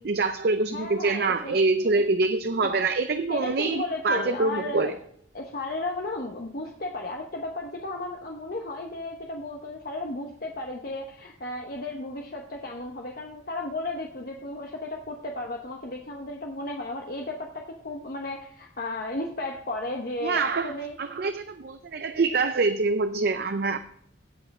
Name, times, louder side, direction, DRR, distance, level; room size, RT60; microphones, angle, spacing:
voice 1, 0.0-5.0 20.2-20.7 21.0-23.8, right 3 dB, 55° right, 9 dB, 0.5 m, -25 dB
voice 2, 0.7-1.6 1.9-2.0 3.3-4.9 5.3-21.0, left 2 dB, 50° left, 1 dB, 1.0 m, -34 dB
16.0 x 5.6 x 4.2 m, 0.68 s
head